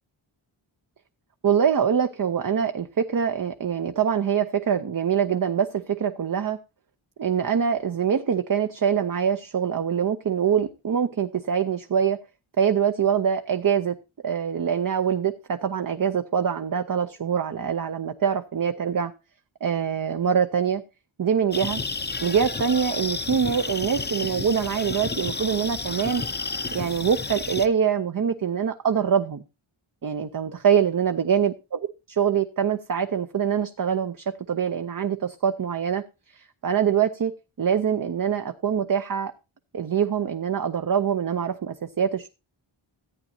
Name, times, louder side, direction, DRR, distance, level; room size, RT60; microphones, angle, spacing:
voice 1, 1.4-6.6 7.2-12.2 12.6-14.0 14.2-19.1 19.6-20.8 21.2-21.8 22.2-26.2 26.7-29.4 30.0-31.5 32.1-36.0 36.3-37.3 37.6-39.3 39.7-42.3, right 7 dB, 40° right, 8 dB, 0.6 m, -24 dB
sound 1, 21.5-27.7, left 3 dB, 20° left, 0.6 m, -31 dB
14.0 x 8.8 x 2.7 m, 0.28 s
wide cardioid pair, 95°, 50 cm